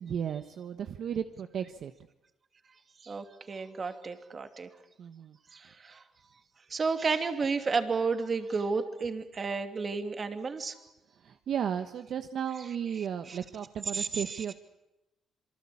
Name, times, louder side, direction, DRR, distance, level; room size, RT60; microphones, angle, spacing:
voice 1, 0.0-1.9 5.0-5.4 11.2-14.5, right 8 dB, 60° right, 8 dB, 1.2 m, -34 dB
voice 2, 3.0-4.7 5.5-6.0 6.7-10.7 12.6-12.7 13.0-13.4 13.9-14.4, right 4 dB, 35° right, 7 dB, 2.7 m, -32 dB
27.0 x 24.0 x 8.6 m, 0.92 s
cardioid pair, 120°, 0 cm